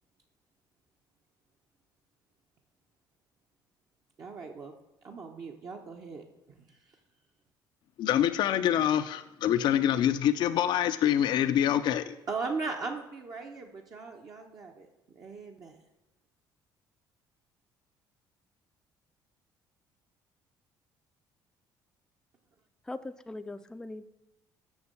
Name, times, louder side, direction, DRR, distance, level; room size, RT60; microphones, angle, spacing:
voice 1, 4.2-4.7 5.0-6.8 12.3-15.8, right 4 dB, 50° right, 1 dB, 1.0 m, -38 dB
voice 2, 8.0-12.2, left 10 dB, 65° left, 10 dB, 0.5 m, -25 dB
voice 3, 22.9-24.0, left 2 dB, 10° left, 10 dB, 0.4 m, -40 dB
7.0 x 6.2 x 6.8 m, 0.96 s
cardioid pair, 100°, 8 cm